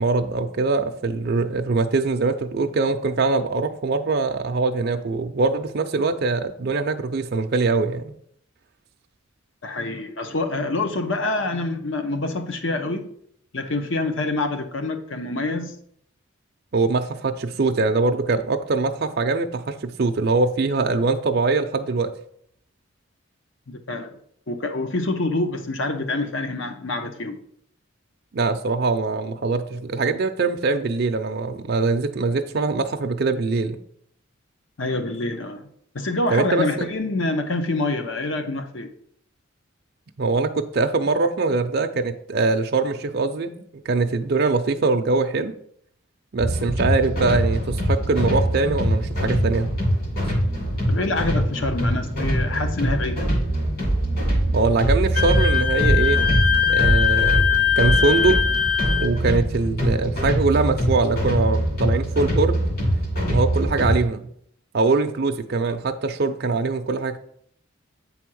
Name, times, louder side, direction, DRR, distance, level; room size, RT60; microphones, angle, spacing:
voice 1, 0.0-8.1 16.7-22.1 28.3-33.8 36.3-36.9 40.2-45.5 46.3-49.7 54.5-56.2 56.7-57.5 57.8-58.4 58.8-62.6 63.3-64.3 64.7-67.2, right 3 dB, 50° right, 5 dB, 0.5 m, -22 dB
voice 2, 9.6-13.1 13.5-15.7 23.7-24.1 24.5-27.4 34.8-35.7 35.9-38.9 50.9-53.3, left 2 dB, 65° left, 7 dB, 0.9 m, -26 dB
sound 1, 46.4-64.0, right 1 dB, 45° left, 2.4 m, -23 dB
Wind instrument woodwind instrument, 55.2-59.1, left 9 dB, 5° left, 0.7 m, -21 dB
8.4 x 3.5 x 6.2 m, 0.67 s
head